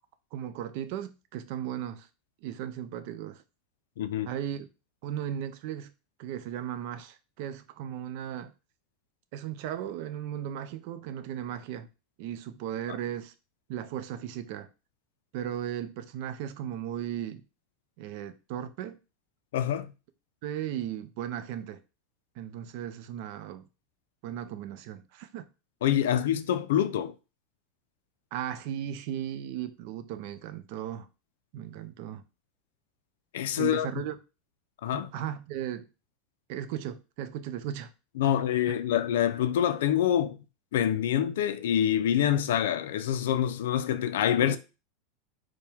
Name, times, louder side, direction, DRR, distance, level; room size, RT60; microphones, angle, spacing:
voice 1, 0.3-2.1 2.4-3.4 4.3-4.7 5.0-5.9 6.2-8.5 9.3-11.9 12.2-13.3 13.7-14.7 15.3-17.4 18.0-19.0 20.4-21.8 22.4-23.7 24.2-25.4 28.3-31.1 31.5-32.2 33.6-34.2 34.9-35.9 36.5-37.9 38.2-38.4 44.4-44.6, right 10 dB, 55° right, 0.5 m, -36 dB
voice 2, 4.0-4.3 19.5-19.9 25.8-27.1 33.3-33.9 34.8-35.1 38.2-40.4 40.7-44.6, left 10 dB, 85° left, 0.3 m, -26 dB
4.5 x 2.1 x 3.4 m
supercardioid pair, 145°, 0 cm